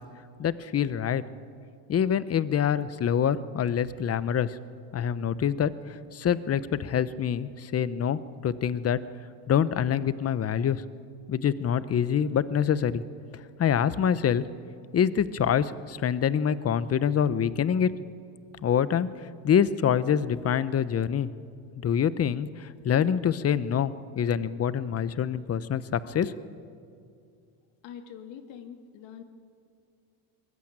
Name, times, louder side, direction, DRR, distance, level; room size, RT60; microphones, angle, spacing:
voice 1, 0.4-1.2 1.9-4.6 4.9-9.0 9.5-10.8 11.3-13.0 13.6-14.4 14.9-17.9 18.6-19.1 19.4-21.3 21.8-26.3, left 8 dB, 30° left, 16 dB, 0.9 m, -26 dB
voice 2, 27.8-29.2, left 8 dB, 65° left, 6 dB, 2.5 m, -44 dB
22.5 x 20.5 x 8.9 m, 2.4 s
supercardioid pair, 110°, 48 cm